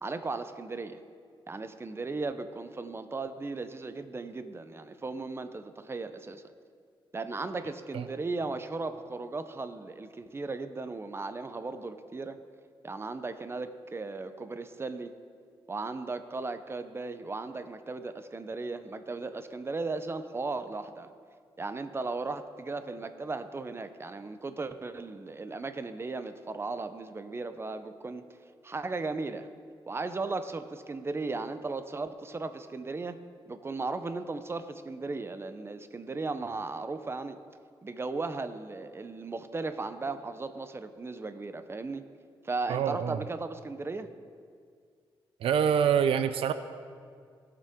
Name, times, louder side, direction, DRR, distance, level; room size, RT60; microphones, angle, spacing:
voice 1, 0.0-1.0 1.5-6.4 7.1-12.4 12.8-15.1 15.7-21.1 21.6-28.2 28.6-29.5 29.9-33.2 33.5-37.4 37.8-42.0 42.4-44.1, right 3 dB, 25° right, 10 dB, 0.7 m, -36 dB
voice 2, 42.7-43.2 45.4-46.5, right 8 dB, 80° right, 11 dB, 0.4 m, -26 dB
18.5 x 6.7 x 3.7 m, 2.2 s
cardioid pair, 80°, 9 cm